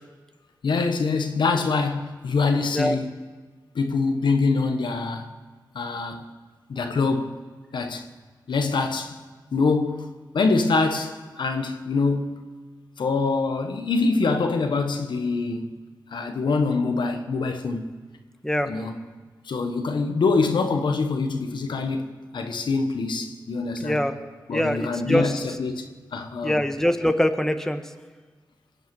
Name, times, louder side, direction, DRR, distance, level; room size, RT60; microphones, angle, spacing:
voice 1, 0.6-3.1 3.7-5.3 5.7-6.3 6.7-7.3 7.7-8.0 8.5-9.2 9.5-12.4 13.0-15.7 16.1-17.9 18.6-19.0 19.4-24.0 24.5-25.9 26.1-26.6, left 4 dB, 85° left, 1.2 m, -24 dB
voice 2, 23.8-24.1 24.5-25.3 26.4-27.8, equal, 5° left, 1.3 m, -23 dB
21.5 x 8.1 x 6.1 m
cardioid pair, 40°, 8 cm